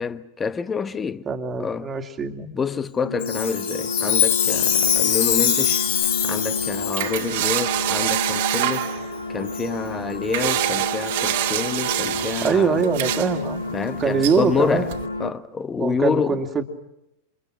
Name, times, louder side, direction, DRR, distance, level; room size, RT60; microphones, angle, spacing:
voice 1, 0.0-1.3 1.6-1.9 2.5-5.8 6.2-8.9 9.3-12.8 13.7-14.9 15.2-16.4, left 5 dB, 15° left, 1.2 m, -27 dB
voice 2, 1.2-2.6 12.1-13.6 14.0-14.9 15.8-16.6, right 5 dB, 20° right, 2.4 m, -23 dB
sound 1, 3.0-15.3, left 3 dB, 80° left, 1.5 m, -31 dB
Chime, 3.2-7.3 7.9-8.0 8.7-8.9 9.5-9.6 10.3-10.4 11.1-11.2 11.9-12.0, left 9 dB, 55° left, 4.0 m, -23 dB
sound 2, 4.5-15.1, right 13 dB, 55° right, 2.2 m, -28 dB
29.0 x 27.5 x 6.2 m
figure-of-eight pair, 90°, 0 cm